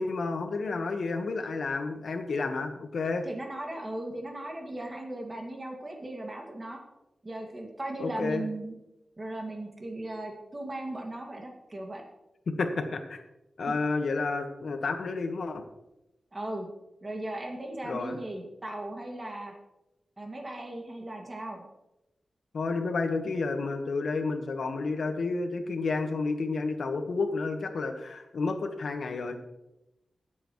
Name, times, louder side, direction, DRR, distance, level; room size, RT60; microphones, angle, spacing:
voice 1, 0.0-3.2 8.0-8.4 12.5-13.2 13.6-15.6 17.8-18.2 22.5-29.4, left 3 dB, 70° left, 6 dB, 1.3 m, -30 dB
voice 2, 3.2-6.8 7.2-8.7 9.2-12.0 16.3-16.7 17.0-19.5 20.2-21.6, right 1 dB, 25° right, 1 dB, 2.1 m, -37 dB
20.5 x 8.0 x 3.1 m, 0.93 s
wide cardioid pair, 150°, 0 cm